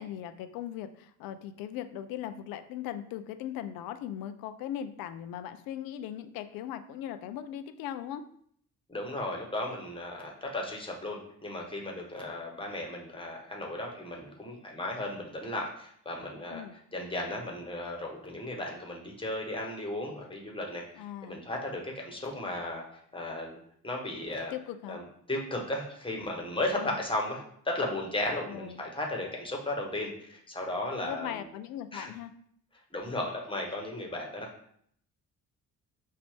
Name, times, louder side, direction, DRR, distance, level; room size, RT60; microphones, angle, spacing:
voice 1, 0.0-8.2 16.5-16.7 21.0-21.4 24.5-25.0 26.8-27.0 28.5-28.8 30.9-32.3, left 10 dB, 50° left, 9 dB, 0.5 m, -39 dB
voice 2, 8.9-16.6 16.9-23.6 23.8-24.5 24.9-25.0 25.3-31.5 31.9-32.1 32.9-34.5, left 1 dB, 10° left, 0 dB, 1.3 m, -35 dB
5.2 x 2.5 x 3.6 m, 0.65 s
figure-of-eight pair, 40°, 45 cm